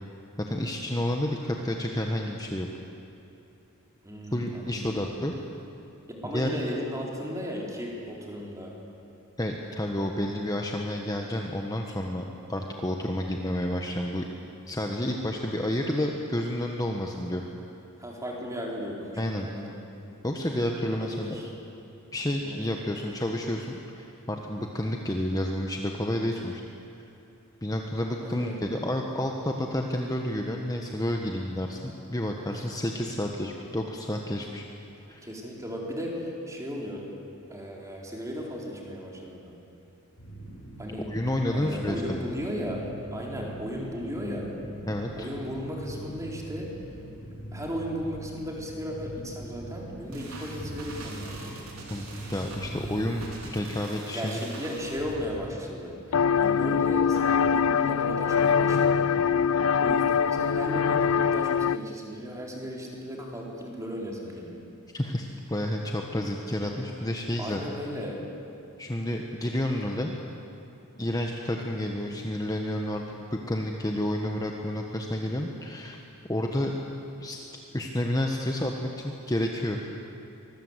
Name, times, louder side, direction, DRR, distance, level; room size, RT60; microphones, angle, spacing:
voice 1, 0.4-2.7 4.3-5.3 6.3-6.5 9.4-14.2 14.6-17.5 19.2-19.5 20.2-21.4 22.1-26.6 27.6-34.6 35.1-35.2 41.1-42.2 44.9-45.3 51.9-53.2 53.5-54.4 64.9-67.6 68.8-70.1 71.0-76.0 76.3-76.8 77.2-77.4 77.7-79.8, left 1 dB, 15° left, 2 dB, 1.3 m, -30 dB
voice 2, 4.0-5.0 6.1-8.7 18.0-19.7 20.9-21.5 22.4-22.9 28.2-28.6 35.2-37.1 37.5-39.6 40.8-41.1 41.5-44.5 45.2-46.7 47.5-51.6 54.1-55.9 56.4-59.1 59.8-64.6 67.4-68.2, equal, 15° right, -2 dB, 4.0 m, -35 dB
hidrofon test cacat, 40.2-53.6, right 1 dB, 90° left, 6.0 m, -42 dB
sound 1, 50.1-55.4, right 2 dB, 75° right, 5.0 m, -42 dB
sound 2, 56.1-61.8, left 7 dB, 75° left, 0.4 m, -23 dB
24.5 x 20.5 x 8.1 m, 2.8 s
head